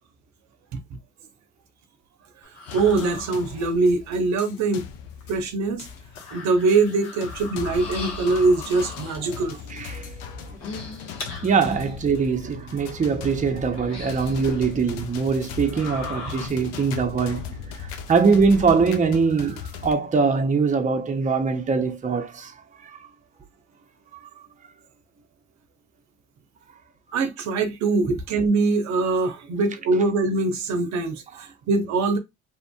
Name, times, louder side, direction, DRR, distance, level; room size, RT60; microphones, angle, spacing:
sound 1, 2.4-3.9 5.2-5.3 5.9-9.5 10.4-12.1 12.6-12.7 13.7-14.6 15.4-16.5, left 4 dB, 60° left, 1.1 m, -39 dB
sound 2, 2.7-19.9, left 7 dB, 85° left, 0.5 m, -38 dB
voice 1, 2.7-4.9 5.3-5.9 6.3-9.9 27.1-32.2, right 3 dB, 65° right, 0.6 m, -23 dB
voice 2, 9.7-10.1 11.4-22.5 22.8-23.1 24.2-24.3, right 5 dB, 25° right, 0.6 m, -22 dB
2.8 x 2.4 x 2.2 m
hypercardioid pair, 55°, 30 cm